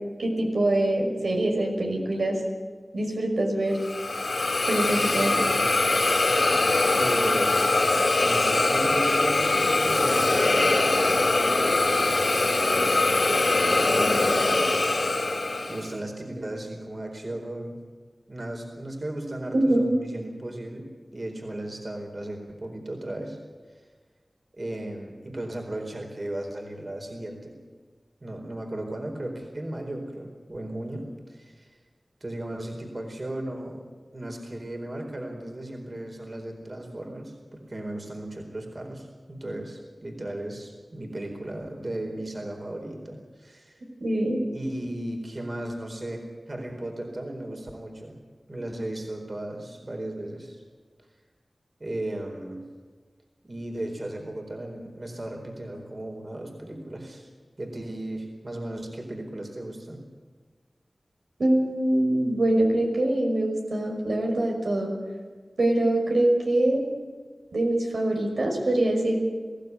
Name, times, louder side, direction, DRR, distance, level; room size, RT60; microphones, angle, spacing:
voice 1, 0.2-2.4 2.9-3.8 4.7-5.4 19.5-19.9 44.0-44.4 61.4-64.9 65.6-66.8 67.5-69.3, right 1 dB, 85° right, 0 dB, 5.7 m, -24 dB
Hiss, 3.8-15.9, left 2 dB, 60° left, 3.6 m, -22 dB
voice 2, 5.3-5.7 6.9-11.1 11.9-13.1 13.9-14.7 15.7-17.8 18.3-20.9 21.1-23.4 24.6-27.5 28.2-31.7 32.2-33.9 34.1-43.8 44.5-48.2 48.5-50.6 51.8-52.6 53.4-57.3 57.6-60.0, right 1 dB, 45° right, 2 dB, 4.3 m, -35 dB
23.0 x 16.0 x 9.6 m, 1.5 s
wide cardioid pair, 80°, 0 cm